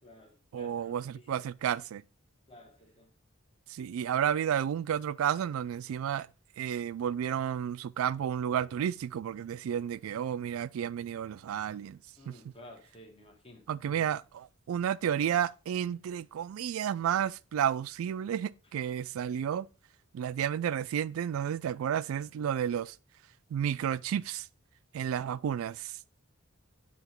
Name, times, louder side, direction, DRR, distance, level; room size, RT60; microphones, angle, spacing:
voice 1, 0.0-1.5 2.5-3.1 12.2-14.1 18.6-18.7, left 1 dB, 25° left, 1.2 m, -54 dB
voice 2, 0.5-2.0 3.7-6.3 6.6-12.0 12.3-12.4 13.7-19.7 20.1-22.9 23.5-24.4 24.9-25.9, right 9 dB, 85° right, 0.3 m, -31 dB
8.0 x 2.9 x 4.3 m
head